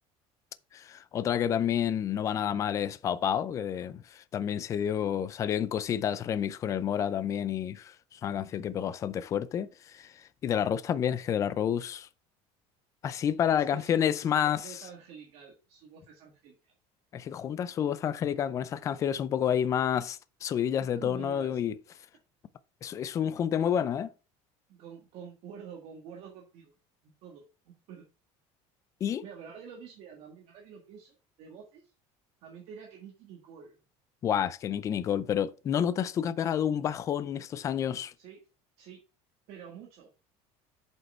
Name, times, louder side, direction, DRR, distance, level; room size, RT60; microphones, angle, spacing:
voice 1, 0.7-10.1 10.4-12.1 13.0-14.6 17.1-21.7 22.8-24.1 29.0-29.2 34.2-38.1, left 9 dB, 25° left, 0.4 m, -29 dB
voice 2, 13.5-16.7 20.8-21.6 23.3-23.4 24.7-26.7 27.0-28.0 29.2-31.9 32.4-33.8 38.2-38.4 38.8-39.0 39.5-40.1, right 7 dB, 50° right, 1.6 m, -48 dB
7.8 x 5.4 x 4.3 m
cardioid pair, 180°, 13 cm